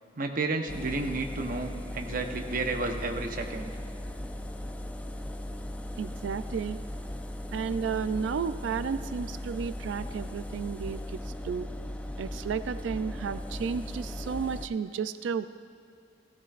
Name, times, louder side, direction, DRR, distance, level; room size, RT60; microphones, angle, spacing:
voice 1, 0.2-3.7, right 3 dB, 50° right, 4 dB, 0.9 m, -31 dB
Engine, 0.7-14.7, left 1 dB, 10° left, 0.4 m, -38 dB
voice 2, 6.0-6.8 7.5-11.7 12.2-15.5, right 6 dB, 80° right, 13 dB, 0.3 m, -32 dB
15.5 x 15.0 x 2.5 m, 2.3 s
head